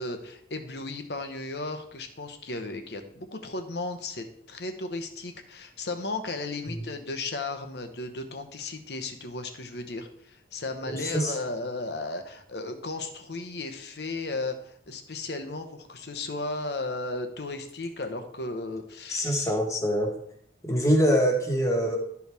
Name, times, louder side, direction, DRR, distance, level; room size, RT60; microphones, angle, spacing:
voice 1, 0.0-19.5, left 2 dB, 70° left, 7 dB, 1.0 m, -35 dB
voice 2, 10.8-11.4 19.1-20.1 20.6-22.0, equal, 15° left, 1 dB, 1.3 m, -24 dB
12.0 x 4.7 x 3.5 m, 0.70 s
head